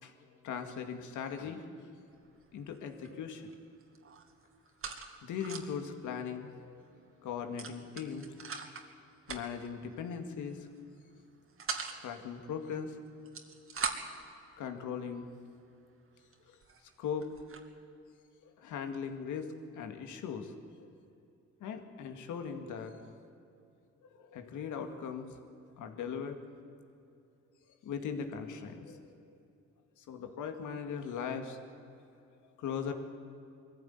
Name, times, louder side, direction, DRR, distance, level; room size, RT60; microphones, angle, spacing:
voice 1, 0.4-1.6 2.5-3.5 5.2-6.8 7.2-8.3 9.3-10.7 12.0-13.0 14.6-15.3 17.0-17.3 18.4-20.9 21.6-23.1 24.2-25.4 25.8-26.4 27.8-29.0 29.2-29.3 30.0-31.6 32.6-32.9, left 7 dB, 80° left, 6 dB, 2.2 m, -39 dB
sound 1, 2.1-2.4 2.7-3.5 3.8-5.9 6.3-6.4 6.6-6.8 7.6-8.9 9.2-9.7 10.5-10.8 11.2-12.0 13.1-14.2 15.0-15.1 15.7-15.8 16.3-16.4 16.6-17.7, right 5 dB, 45° right, 2.4 m, -41 dB
21.5 x 15.0 x 9.5 m, 2.6 s
cardioid pair, 90°, 30 cm